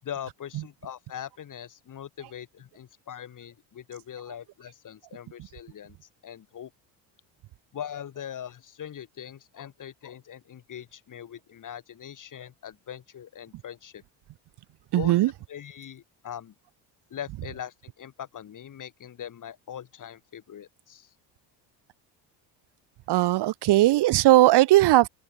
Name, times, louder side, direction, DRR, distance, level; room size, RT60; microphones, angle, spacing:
voice 1, 0.0-6.7 7.7-14.0 14.9-15.2 15.5-16.5 17.1-21.1, left 9 dB, 45° left, 6.2 m, -41 dB
voice 2, 14.9-15.3 23.1-25.1, right 16 dB, 65° right, 3.7 m, -18 dB
open air
cardioid pair, 105°, 43 cm